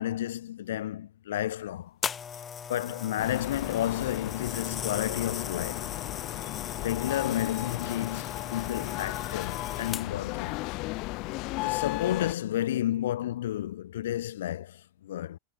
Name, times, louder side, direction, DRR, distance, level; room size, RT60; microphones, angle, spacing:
voice 1, 0.0-1.9 2.7-6.0 6.8-10.5 11.6-15.4, left 12 dB, 60° left, 7.9 m, -31 dB
sound 1, 2.0-10.3 11.1-11.3, left 7 dB, 20° left, 4.3 m, -39 dB
sound 2, 3.2-12.3, left 24 dB, 40° left, 2.9 m, -35 dB
figure-of-eight pair, 90°, 0 cm